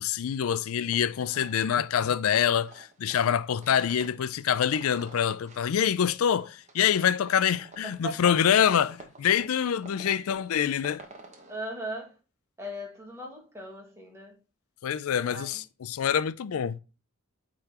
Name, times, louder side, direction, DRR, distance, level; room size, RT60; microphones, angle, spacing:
voice 1, 0.0-11.0 14.8-16.8, left 8 dB, 80° left, 0.4 m, -26 dB
sound 1, 0.9-11.6, right 2 dB, 35° right, 1.1 m, -51 dB
voice 2, 7.8-8.3 11.5-12.2 12.6-14.4 15.3-15.6, right 1 dB, 15° right, 1.7 m, -38 dB
8.6 x 3.9 x 2.9 m
head